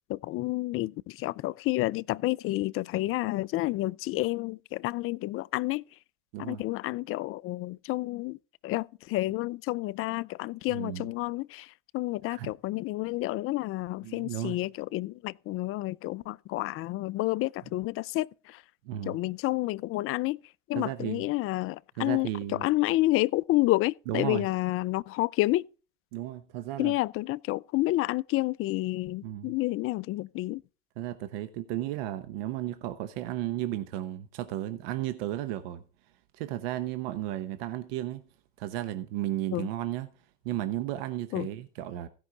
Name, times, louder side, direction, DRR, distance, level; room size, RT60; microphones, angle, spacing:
voice 1, 0.1-5.8 6.4-8.4 8.6-18.6 19.1-20.4 20.7-25.7 26.8-30.6 39.5-39.7 41.3-41.5, left 18 dB, 50° left, 0.5 m, -30 dB
voice 2, 10.7-11.1 12.3-12.5 14.0-14.6 18.8-19.2 20.7-21.2 22.0-22.7 24.1-24.4 26.1-26.9 29.2-29.5 31.0-35.8 36.3-38.2 38.6-40.1 40.4-42.1, right 13 dB, 75° right, 0.9 m, -34 dB
15.5 x 5.5 x 4.9 m
hypercardioid pair, 85°, 29 cm